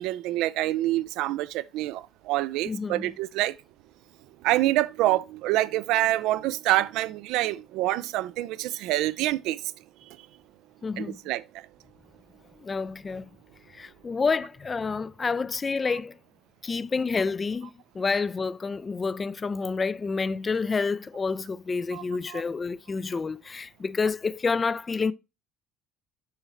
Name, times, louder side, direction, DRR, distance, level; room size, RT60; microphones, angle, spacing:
voice 1, 0.0-3.5 4.4-9.6 11.0-11.4 21.9-22.4, right 16 dB, 60° right, 0.3 m, -26 dB
voice 2, 2.7-3.0 10.8-11.2 12.6-13.3 13.7-16.1 16.6-25.1, left 4 dB, 30° left, 0.4 m, -29 dB
8.3 x 5.5 x 2.9 m
figure-of-eight pair, 55°, 0 cm